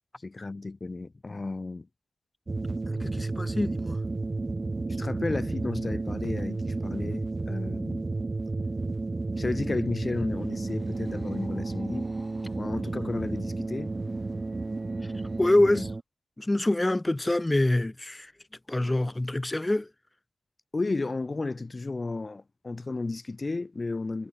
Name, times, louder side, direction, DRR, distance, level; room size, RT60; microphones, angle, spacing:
voice 1, 0.2-1.9 5.0-8.1 9.4-12.1 12.5-13.9 15.5-15.8 20.7-24.3, left 3 dB, 30° left, 1.2 m, -33 dB
sound 1, 2.5-16.0, right 3 dB, 30° right, 1.4 m, -32 dB
voice 2, 2.9-4.0 15.4-15.9 16.4-18.3 18.7-19.9, left 1 dB, 15° left, 1.5 m, -25 dB
sound 2, 9.4-15.6, equal, ahead, 7.2 m, -50 dB
cardioid pair, 85°, 0 cm